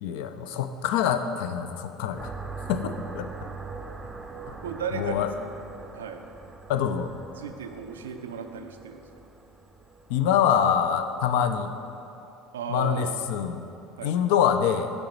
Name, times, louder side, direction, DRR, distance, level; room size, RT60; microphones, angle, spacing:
voice 1, 0.0-2.3 2.7-3.3 4.5-4.6 4.9-5.3 6.7-7.1 10.1-11.7 12.7-13.6 14.0-14.9, left 8 dB, 70° left, 9 dB, 0.3 m, -25 dB
sound 1, 2.2-11.7, right 4 dB, 20° right, 0.5 m, -42 dB
voice 2, 4.5-5.3 5.9-6.3 7.4-9.0 12.5-13.2 14.0-14.1, right 6 dB, 85° right, 7 dB, 0.3 m, -35 dB
7.6 x 4.2 x 3.0 m, 2.8 s
hypercardioid pair, 70°, 0 cm